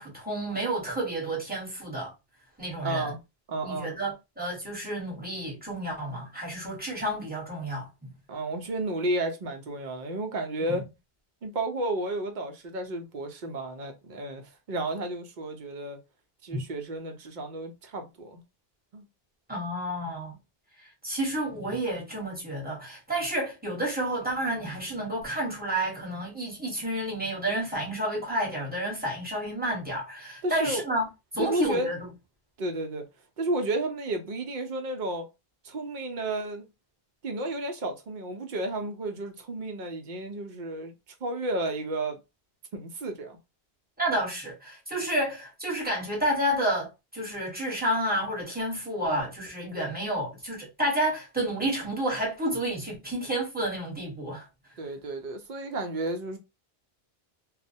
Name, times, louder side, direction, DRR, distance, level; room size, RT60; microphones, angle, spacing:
voice 1, 0.0-2.1 2.6-3.1 3.6-8.1 10.7-10.8 16.5-16.6 19.5-20.4 21.0-31.1 31.3-32.0 44.0-54.5, right 1 dB, 10° right, 1.0 m, -30 dB
voice 2, 2.8-3.2 3.5-3.9 8.3-10.9 11.4-16.0 16.4-18.4 18.9-19.0 30.4-30.9 31.4-31.9 32.6-33.1 33.4-35.3 35.6-36.6 37.2-40.9 41.2-42.2 42.7-43.4 54.8-56.4, right 2 dB, 55° right, 0.7 m, -32 dB
2.3 x 2.0 x 2.6 m
omnidirectional pair, 1.0 m